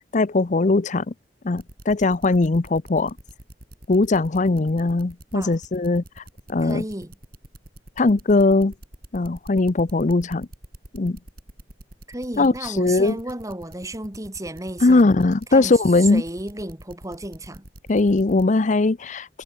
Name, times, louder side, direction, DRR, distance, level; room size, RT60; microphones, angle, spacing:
voice 1, 0.1-1.1 1.4-3.1 3.9-6.0 6.5-6.8 8.0-8.7 9.1-10.5 10.9-11.2 12.4-13.2 14.8-16.2 17.9-19.4, left 3 dB, 45° left, 0.6 m, -20 dB
sound 1, 1.6-18.4, right 1 dB, 55° right, 4.7 m, -45 dB
voice 2, 6.6-7.1 12.1-15.1 15.5-17.6, right 1 dB, 20° right, 2.6 m, -33 dB
head